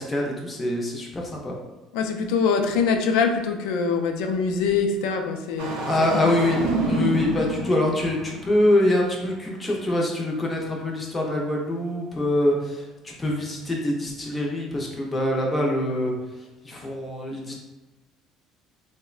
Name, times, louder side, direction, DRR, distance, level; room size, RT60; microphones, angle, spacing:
voice 1, 0.0-1.5 5.9-6.6 6.9-16.1 16.6-17.5, left 1 dB, 10° left, -1 dB, 0.4 m, -24 dB
voice 2, 1.9-5.9 6.1-6.4, left 5 dB, 75° left, 4 dB, 0.3 m, -24 dB
Engine starting, 5.6-8.6, right 2 dB, 80° right, 0.6 m, -28 dB
3.7 x 2.1 x 2.4 m, 1.1 s
cardioid pair, 180°, 0 cm